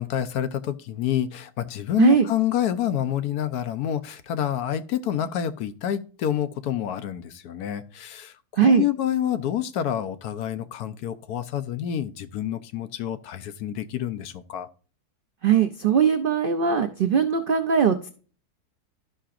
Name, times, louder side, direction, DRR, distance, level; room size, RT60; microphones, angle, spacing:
voice 1, 0.0-8.3 8.6-14.7, left 11 dB, 75° left, 1.2 m, -28 dB
voice 2, 15.4-18.1, right 7 dB, 75° right, 0.4 m, -20 dB
13.0 x 5.7 x 2.5 m
omnidirectional pair, 1.7 m